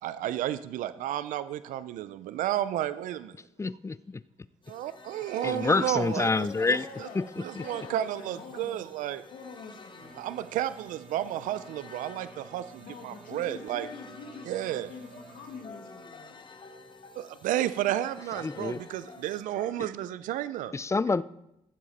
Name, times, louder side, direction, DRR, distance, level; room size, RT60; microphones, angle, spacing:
voice 1, 0.0-3.4 4.7-7.1 7.4-9.2 10.2-13.9 14.5-14.9 17.2-20.7, right 12 dB, 80° right, 14 dB, 0.4 m, -32 dB
voice 2, 3.6-4.2 5.4-6.8 7.2-7.3 7.6-7.7 18.4-18.8 20.7-21.2, left 3 dB, 20° left, 18 dB, 0.4 m, -27 dB
sound 1, 4.6-19.4, left 4 dB, 35° left, 1.2 m, -52 dB
voice 3, 5.4-7.3 7.6-8.9 9.3-10.1 12.7-16.5, left 5 dB, 85° left, 3 dB, 1.9 m, -45 dB
sound 2, 10.0-15.6, right 5 dB, 65° right, 1.2 m, -53 dB
sound 3, 13.3-13.4 13.8-18.3 18.6-19.7, left 3 dB, 60° left, 3.8 m, -53 dB
15.0 x 7.4 x 4.1 m, 0.84 s
supercardioid pair, 60°, 14 cm